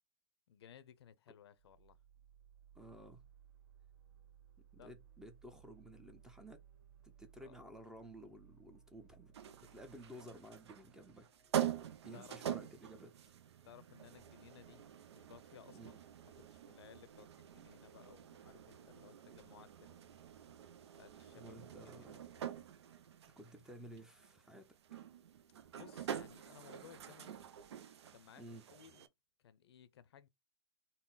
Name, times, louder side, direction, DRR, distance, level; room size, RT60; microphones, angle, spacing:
voice 1, 0.5-2.0 4.8-4.9 7.4-7.6 12.1-12.4 13.6-14.8 15.1-16.0 16.4-20.2 21.0-21.6 21.8-22.4 25.7-27.4 28.1-28.4 28.7-29.1 29.4-30.3, left 9 dB, 75° left, 0.6 m, -60 dB
sound 1, 1.6-11.8, right 9 dB, 55° right, 1.7 m, -64 dB
voice 2, 2.7-3.2 4.7-6.6 7.0-9.3 9.7-11.3 12.0-13.1 15.7-16.0 21.3-22.2 23.4-24.7 28.4-28.6, right 1 dB, 5° right, 0.5 m, -54 dB
sound 2, 9.3-29.1, right 9 dB, 85° right, 0.5 m, -46 dB
3.9 x 2.0 x 3.9 m
hypercardioid pair, 135°, 14 cm